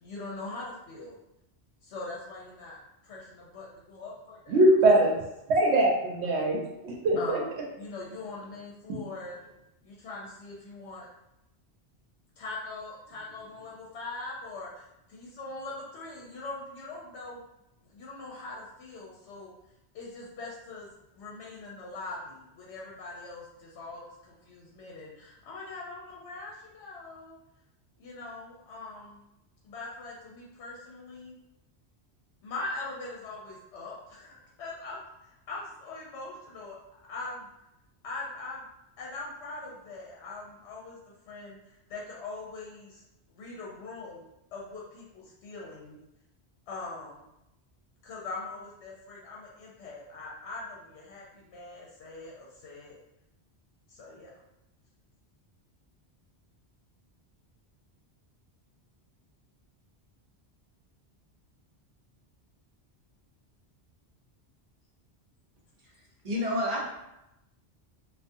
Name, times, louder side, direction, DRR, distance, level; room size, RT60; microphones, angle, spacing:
voice 1, 0.0-1.2 1.8-2.8 3.0-4.6 7.2-7.5 7.8-9.4 9.8-11.1 12.4-17.4 17.8-19.5 19.9-27.4 28.0-29.2 29.6-31.4 32.4-36.8 37.1-37.5 38.0-38.6 39.0-41.0 41.3-43.0 43.4-44.2 44.5-46.0 46.7-47.2 48.0-53.0 53.9-54.3, left 3 dB, 80° left, -4 dB, 0.9 m, -42 dB
voice 2, 4.5-5.1 5.5-7.4, right 1 dB, 90° right, 0 dB, 0.9 m, -22 dB
voice 3, 66.2-66.9, left 1 dB, 45° right, -4 dB, 0.6 m, -29 dB
2.4 x 2.3 x 2.6 m, 0.89 s
omnidirectional pair, 1.1 m